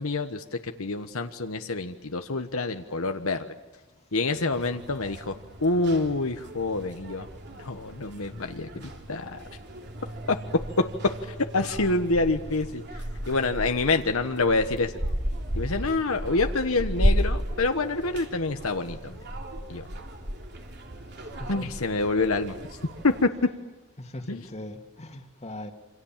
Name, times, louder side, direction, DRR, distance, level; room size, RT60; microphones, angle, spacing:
voice 1, 0.0-3.5 4.1-5.4 5.6-7.3 7.6-9.4 10.3-10.4 11.2-14.9 15.5-19.2 19.7-19.9 21.5-22.6 23.0-23.3 24.3-24.5, left 3 dB, 70° left, 6 dB, 1.3 m, -27 dB
sound 1, 4.5-23.3, equal, 50° right, 3.2 m, -34 dB
voice 2, 21.3-21.7 24.0-25.7, left 1 dB, 30° left, 5 dB, 2.3 m, -40 dB
28.0 x 26.5 x 7.5 m, 1.2 s
head